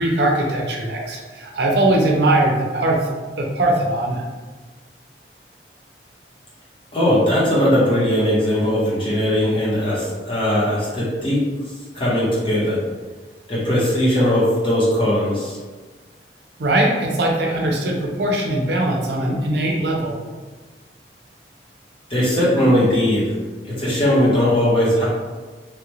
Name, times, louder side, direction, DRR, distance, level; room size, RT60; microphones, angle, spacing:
voice 1, 0.0-3.1 3.4-4.3 16.6-20.2, right 1 dB, 70° right, 0 dB, 0.6 m, -20 dB
voice 2, 6.9-11.4 11.9-12.8 13.5-15.6 22.1-23.3 23.6-25.1, equal, 30° left, -7 dB, 1.1 m, -19 dB
3.3 x 2.4 x 3.0 m, 1.4 s
head